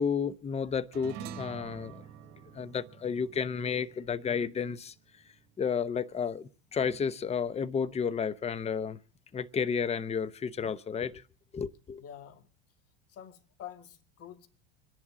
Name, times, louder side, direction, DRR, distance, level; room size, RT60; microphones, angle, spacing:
voice 1, 0.0-2.0 2.5-4.9 5.6-9.0 9.3-11.2 11.5-12.0, left 6 dB, 20° left, 0.7 m, -32 dB
sound 1, 0.9-5.6, right 8 dB, 55° right, 1.6 m, -47 dB
voice 2, 12.0-12.5 13.1-14.5, left 10 dB, 50° left, 2.3 m, -47 dB
26.5 x 11.0 x 3.7 m
supercardioid pair, 100°, 32 cm